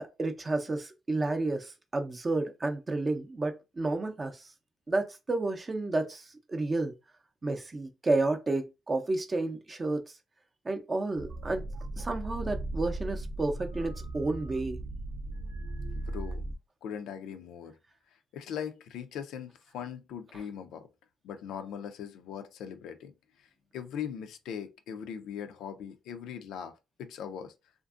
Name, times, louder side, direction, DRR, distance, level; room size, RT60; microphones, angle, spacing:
voice 1, 0.0-4.5 4.9-6.9 7.4-10.0 10.6-11.7 12.0-14.8, right 2 dB, 30° right, 0.5 m, -31 dB
sound 1, 11.2-16.6, right 2 dB, 85° right, 0.5 m, -37 dB
voice 2, 16.0-16.4 16.8-17.8 18.3-20.9 21.2-23.1 23.7-27.5, left 8 dB, 85° left, 0.3 m, -40 dB
2.5 x 2.4 x 2.3 m
cardioid pair, 90°, 0 cm